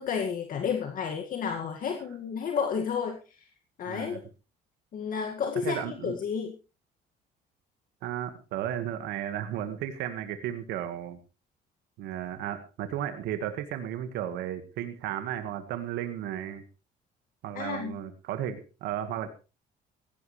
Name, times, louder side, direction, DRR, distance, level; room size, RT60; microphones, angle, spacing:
voice 1, 0.0-3.5 3.8-4.2 4.9-6.5 17.5-17.9, left 6 dB, 55° left, 4 dB, 2.1 m, -31 dB
voice 2, 3.9-4.2 5.6-6.2 8.0-11.2 12.0-16.6 17.4-19.3, right 10 dB, 85° right, 9 dB, 1.7 m, -34 dB
17.0 x 16.0 x 3.3 m, 0.32 s
cardioid pair, 110°, 17 cm